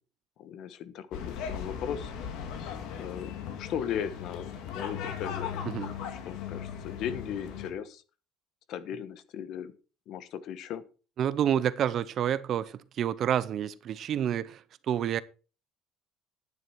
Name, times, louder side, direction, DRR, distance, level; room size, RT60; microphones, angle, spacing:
voice 1, 0.4-2.1 2.6-5.6 6.0-8.0 8.7-9.7 10.1-10.8, left 8 dB, 50° left, 1.1 m, -37 dB
sound 1, 1.1-7.7, left 8 dB, 65° left, 2.6 m, -38 dB
voice 2, 11.2-15.2, right 9 dB, 40° right, 0.6 m, -29 dB
10.5 x 9.5 x 4.6 m
cardioid pair, 170°, 0 cm